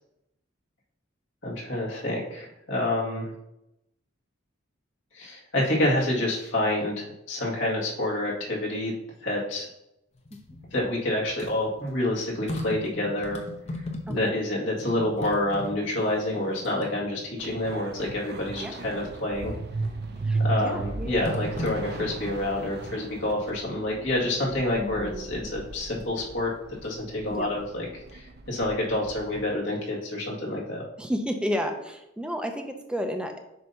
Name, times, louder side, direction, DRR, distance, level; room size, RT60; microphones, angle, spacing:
voice 1, 1.4-3.3 5.1-8.9 9.2-9.7 10.7-13.4 14.1-19.6 20.4-26.5 26.8-27.9 28.1-30.8, left 1 dB, 65° left, -4 dB, 2.0 m, -28 dB
sound 1, 10.1-14.5 14.7-17.5 18.1-18.2 19.8-20.3 21.2-22.8 24.4-24.8 25.7-26.4 26.8-27.8 28.1-28.2, left 1 dB, 30° left, 0.8 m, -39 dB
voice 2, 14.1-14.4 18.6-18.8 20.2-21.3 24.8-25.5 27.3-27.5 31.0-33.4, equal, 5° right, 5 dB, 0.6 m, -32 dB
sound 2, 17.4-29.5, right 3 dB, 55° right, 0.6 m, -36 dB
7.7 x 2.8 x 5.6 m, 0.86 s
head